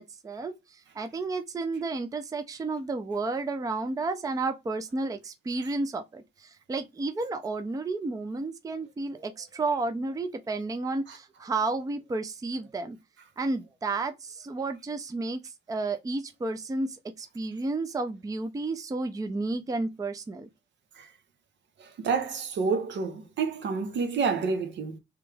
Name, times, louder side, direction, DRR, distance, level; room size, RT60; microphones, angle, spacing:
voice 1, 0.0-13.0 13.4-20.5, right 3 dB, 15° right, 0.5 m, -32 dB
voice 2, 21.8-25.0, right 5 dB, 65° right, 0.9 m, -29 dB
3.5 x 3.0 x 3.4 m
cardioid pair, 90°, 20 cm